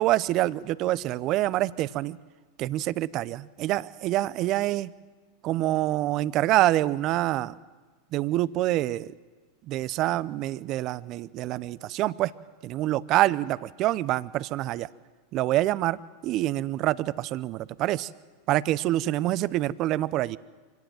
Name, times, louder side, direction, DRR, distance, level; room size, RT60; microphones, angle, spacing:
voice 1, 0.0-2.2 2.6-4.9 5.4-7.5 8.1-9.1 9.7-12.3 12.6-14.9 15.3-18.1 18.5-20.4, right 15 dB, 45° right, 19 dB, 0.7 m, -26 dB
25.0 x 18.0 x 7.8 m, 1.3 s
hypercardioid pair, 95°, 0 cm